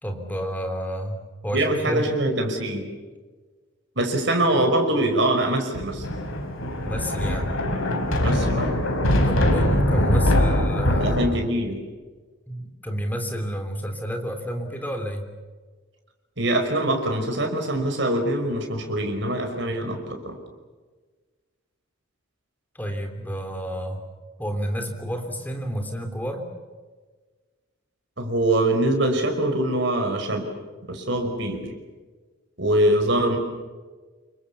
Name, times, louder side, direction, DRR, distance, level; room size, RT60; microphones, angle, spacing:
voice 1, 0.0-2.1 6.8-7.6 9.2-11.2 12.5-15.3 22.7-24.0 24.4-26.5 33.2-33.3, equal, 10° left, 4 dB, 3.3 m, -30 dB
voice 2, 1.5-2.9 4.0-6.1 8.2-8.8 11.0-11.8 16.4-20.4 28.2-30.5 30.9-31.7 32.6-33.4, right 1 dB, 55° right, 4 dB, 5.4 m, -23 dB
Thunder, 5.7-11.3, left 1 dB, 85° left, 4.7 m, -22 dB
28.5 x 24.0 x 7.0 m, 1.4 s
head